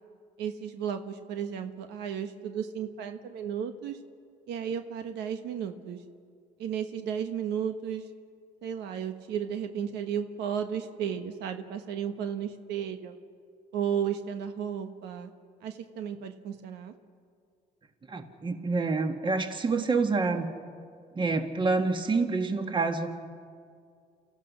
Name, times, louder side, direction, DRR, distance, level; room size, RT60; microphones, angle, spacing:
voice 1, 0.4-4.0 4.5-6.0 6.6-8.1 8.6-13.2 13.7-15.3 15.6-16.9, right 8 dB, 85° right, 7 dB, 1.2 m, -34 dB
voice 2, 18.1-20.5 21.2-23.3, right 3 dB, 30° right, 5 dB, 1.8 m, -27 dB
29.0 x 14.5 x 6.3 m, 2.2 s
cardioid pair, 110°, 17 cm